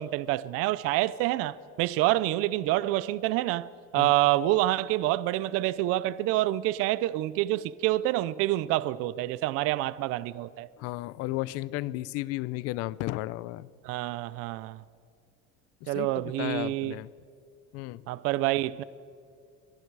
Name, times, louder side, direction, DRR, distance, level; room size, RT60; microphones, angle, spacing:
voice 1, 0.0-3.7 3.9-10.7 13.8-14.8 15.9-16.9 18.1-18.8, right 16 dB, 50° right, 0.6 m, -27 dB
voice 2, 10.8-13.7 15.8-17.1 17.7-18.1, left 17 dB, 50° left, 0.6 m, -34 dB
28.5 x 23.0 x 4.8 m
cardioid pair, 160°, 30 cm